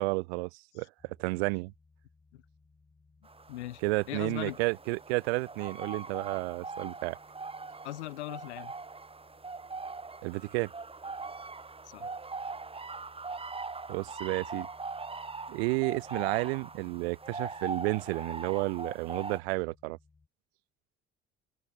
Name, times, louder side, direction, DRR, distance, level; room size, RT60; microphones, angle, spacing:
voice 1, 0.0-1.7 3.8-7.2 10.2-10.7 13.9-14.7 15.5-20.0, right 27 dB, 65° right, 0.6 m, -31 dB
sound 1, 1.0-20.3, left 4 dB, 20° left, 6.5 m, -63 dB
sound 2, 3.2-19.4, right 4 dB, 15° right, 1.5 m, -41 dB
voice 2, 3.5-3.8 4.1-4.6 7.8-8.7 11.8-12.1, left 17 dB, 75° left, 0.5 m, -39 dB
figure-of-eight pair, 50°, 34 cm